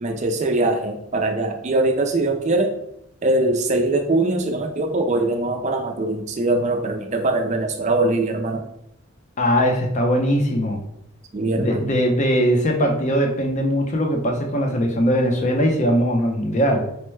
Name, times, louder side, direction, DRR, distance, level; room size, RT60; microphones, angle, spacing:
voice 1, 0.0-2.7 3.2-8.7 11.3-11.9, right 2 dB, 35° right, 4 dB, 0.4 m, -22 dB
voice 2, 9.4-10.8 11.5-16.8, equal, 35° left, 2 dB, 0.6 m, -20 dB
4.3 x 2.1 x 3.1 m, 0.81 s
head